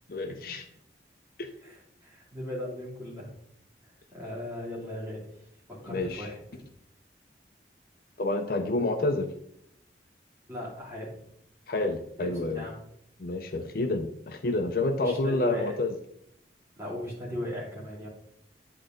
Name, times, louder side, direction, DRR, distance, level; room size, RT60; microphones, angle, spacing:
voice 1, 0.1-0.6 1.4-1.5 5.9-6.3 8.2-9.3 11.7-12.6 13.2-15.9, left 2 dB, 50° left, 6 dB, 0.5 m, -29 dB
voice 2, 1.6-3.3 4.1-6.7 10.5-11.2 12.2-12.8 15.0-15.8 16.8-18.1, left 1 dB, 15° right, -6 dB, 2.6 m, -38 dB
10.0 x 3.9 x 3.7 m, 0.73 s
head